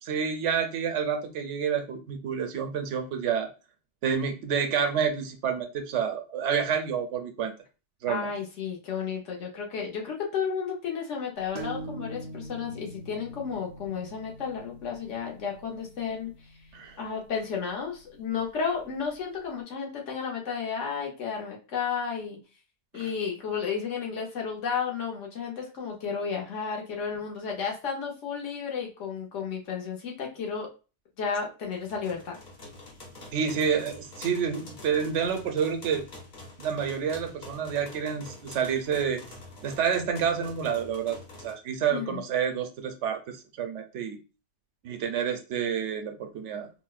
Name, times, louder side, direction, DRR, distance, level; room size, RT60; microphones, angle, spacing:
voice 1, 0.0-3.5 4.0-7.5 8.0-8.3 16.7-17.0 22.9-23.1 33.3-36.0 36.6-39.2 39.6-44.2 44.8-46.7, right 7 dB, 80° right, 6 dB, 0.9 m, -29 dB
voice 2, 8.1-16.3 17.0-22.4 22.9-30.7 31.2-32.4 41.9-42.2, left 6 dB, 85° left, 0 dB, 1.2 m, -32 dB
sound 1, 11.5-19.0, right 2 dB, 55° right, 0.6 m, -44 dB
sound 2, 31.7-41.5, left 2 dB, 45° left, 0.9 m, -46 dB
4.4 x 2.1 x 2.4 m, 0.32 s
omnidirectional pair, 1.2 m